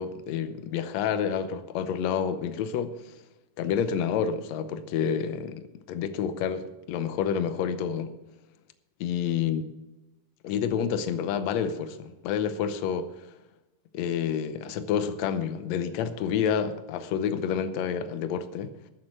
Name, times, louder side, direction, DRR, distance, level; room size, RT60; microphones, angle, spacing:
voice 1, 0.0-3.1 3.6-8.1 9.0-9.6 10.4-13.1 13.9-18.7, left 7 dB, 80° left, 1.6 m, -29 dB
13.0 x 7.4 x 6.6 m
omnidirectional pair, 4.1 m